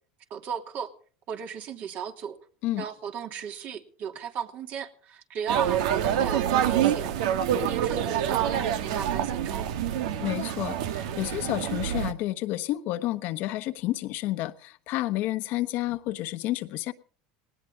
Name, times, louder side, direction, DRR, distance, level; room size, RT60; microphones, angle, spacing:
voice 1, 0.3-0.9 1.3-2.4 2.8-9.7, right 7 dB, 50° right, 2.8 m, -36 dB
sound 1, 5.5-12.1, right 10 dB, 80° right, 1.6 m, -26 dB
voice 2, 10.2-16.9, left 16 dB, 60° left, 1.2 m, -30 dB
19.0 x 18.5 x 3.8 m
supercardioid pair, 100°, 4 cm